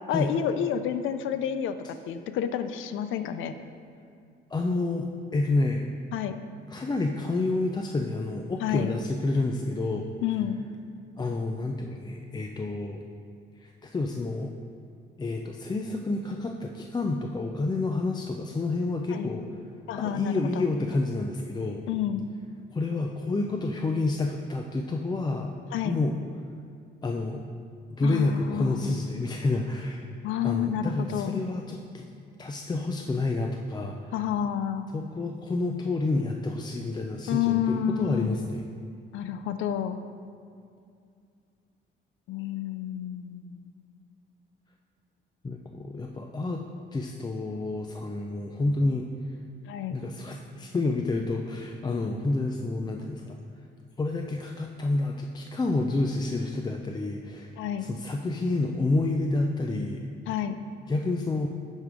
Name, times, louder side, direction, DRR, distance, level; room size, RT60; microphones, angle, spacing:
voice 1, 0.1-1.8 2.1-3.6 6.1-6.4 8.6-8.9 10.2-10.6 19.1-19.3 19.9-20.6 21.9-22.2 25.7-26.0 28.0-29.0 30.2-31.4 34.1-34.9 37.3-38.3 39.1-40.0 42.3-43.7 49.7-50.0 57.6-57.9 60.3-60.6, left 9 dB, 80° left, 10 dB, 0.4 m, -29 dB
voice 2, 4.5-5.9 6.7-10.1 11.2-13.0 13.6-14.5 15.2-19.6 19.9-21.9 22.7-25.5 25.8-26.2 27.0-27.4 27.9-30.1 30.4-32.1 32.4-34.1 34.9-38.6 45.4-46.6 46.9-49.1 49.9-53.4 54.0-60.0 60.9-61.5, left 2 dB, 20° left, 2 dB, 0.4 m, -29 dB
10.5 x 3.7 x 4.8 m, 2.4 s
cardioid pair, 90°, 20 cm